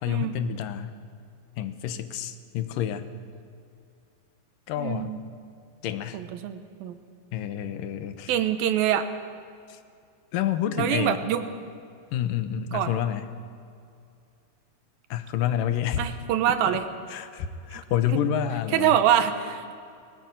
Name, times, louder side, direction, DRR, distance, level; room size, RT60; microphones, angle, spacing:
voice 1, 0.0-0.9 1.6-3.1 4.7-5.1 5.8-6.2 7.3-8.3 9.7-9.8 10.3-11.2 12.1-13.3 15.1-16.1 16.5-16.8 17.1-19.0, left 10 dB, 75° left, 11 dB, 2.5 m, -28 dB
voice 2, 4.8-5.2 6.1-6.9 8.3-9.1 10.8-11.4 12.7-12.9 16.0-16.9 18.1-18.2 18.7-19.6, right 10 dB, 90° right, 10 dB, 2.9 m, -24 dB
19.5 x 17.0 x 9.1 m, 2.4 s
omnidirectional pair, 4.2 m